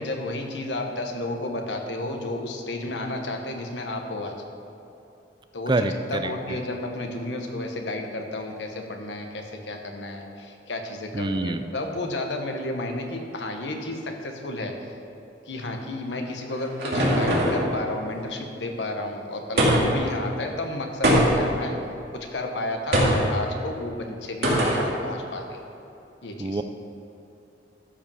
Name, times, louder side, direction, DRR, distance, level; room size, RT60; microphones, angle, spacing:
voice 1, 0.0-4.4 5.5-14.9 15.5-21.8 22.1-25.6 26.2-26.6, left 2 dB, 80° left, 3 dB, 1.1 m, -32 dB
voice 2, 5.7-6.6 11.1-11.6 26.4-26.6, right 2 dB, 25° right, 8 dB, 0.4 m, -26 dB
sound 1, 16.1-17.7 19.6-20.1 21.0-21.6 22.9-23.3 24.4-24.9, equal, 65° right, 2.4 m, -21 dB
12.5 x 5.2 x 5.6 m, 2.9 s
head